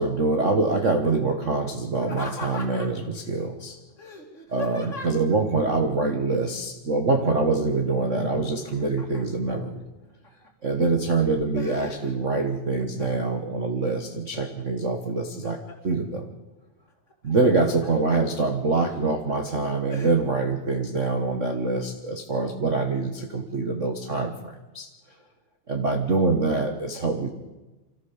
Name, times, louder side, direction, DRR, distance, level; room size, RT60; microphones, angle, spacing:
voice 1, 0.0-3.8 4.5-9.8 10.6-15.6 15.8-16.3 17.2-24.9 25.7-27.3, right 3 dB, 80° right, 4 dB, 0.6 m, -25 dB
Laughter, 2.0-3.1 4.0-5.4 7.1-7.6 7.9-9.5 10.0-10.7 11.1-12.4 12.8-13.4 13.9-14.6 15.1-16.0 17.1-17.9 18.4-18.5 19.1-19.3 19.9-20.1, left 2 dB, 25° left, 2.6 m, -39 dB
26.0 x 14.0 x 7.3 m, 1.1 s
omnidirectional pair, 3.9 m